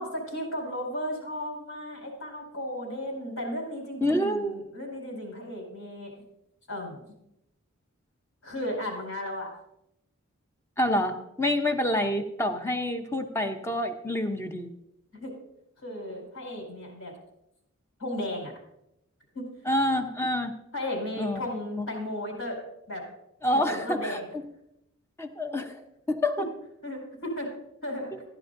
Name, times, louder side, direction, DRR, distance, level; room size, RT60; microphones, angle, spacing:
voice 1, 0.0-6.1 6.7-7.0 8.4-9.5 15.1-15.3 15.8-17.1 18.0-18.5 19.3-19.5 20.7-22.6 22.9-23.0 23.5-24.3 26.4-26.5 26.8-27.5 27.8-28.1, left 1 dB, 70° left, -1 dB, 4.5 m, -35 dB
voice 2, 4.0-4.6 10.8-14.7 19.7-20.5 21.2-21.4 23.4-24.4 25.2-25.7 26.1-26.5, left 1 dB, 10° left, 6 dB, 0.7 m, -27 dB
15.5 x 11.0 x 2.6 m, 0.84 s
head